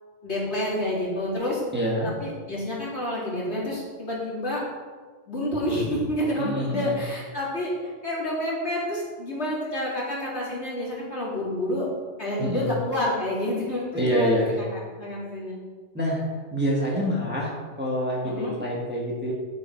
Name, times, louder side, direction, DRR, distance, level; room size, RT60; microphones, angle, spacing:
voice 1, 0.2-1.6 2.2-4.6 5.3-7.7 8.0-11.9 12.2-14.3 14.6-15.6 18.2-18.5, left 1 dB, 50° left, -6 dB, 3.0 m, -29 dB
voice 2, 1.7-2.1 6.4-7.0 12.4-12.7 13.9-14.6 15.9-16.2 16.5-19.3, equal, 10° right, -4 dB, 1.8 m, -26 dB
9.6 x 7.7 x 4.7 m, 1.5 s
omnidirectional pair, 1.4 m